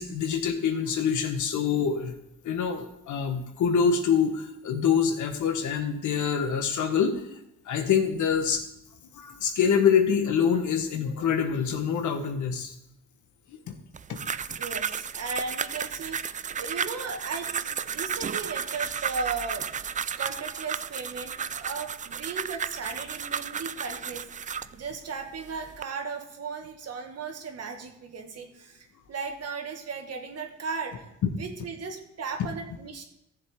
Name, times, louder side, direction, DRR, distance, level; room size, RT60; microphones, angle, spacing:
voice 1, 0.0-2.2 2.4-7.2 7.6-8.6 9.1-12.7 13.5-13.8 14.1-14.2 32.4-32.5, left 7 dB, 75° left, 6 dB, 1.4 m, -25 dB
sound 1, 13.9-24.7 25.4-25.8, right 7 dB, 25° right, 0.3 m, -33 dB
voice 2, 14.6-16.2 16.6-19.7 20.2-31.1 31.4-33.0, right 5 dB, 55° right, 4 dB, 1.8 m, -36 dB
14.5 x 7.2 x 3.7 m, 0.85 s
cardioid pair, 90°, 30 cm